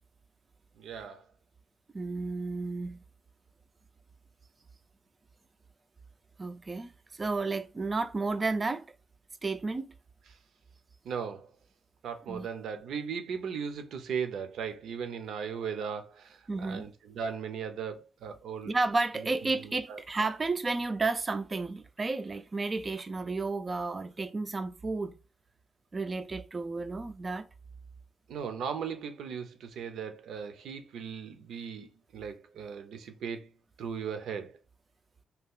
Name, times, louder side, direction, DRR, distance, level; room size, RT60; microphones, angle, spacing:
voice 1, 0.7-1.2 11.0-11.5 12.0-18.7 19.4-20.0 28.3-33.5 33.8-34.6, right 6 dB, 75° right, 0.6 m, -37 dB
voice 2, 1.9-3.0 6.4-8.8 9.4-9.9 12.3-12.5 16.5-16.8 18.6-25.1 25.9-27.5, right 3 dB, 25° right, 0.4 m, -32 dB
2.8 x 2.3 x 3.6 m
cardioid pair, 140°, 0 cm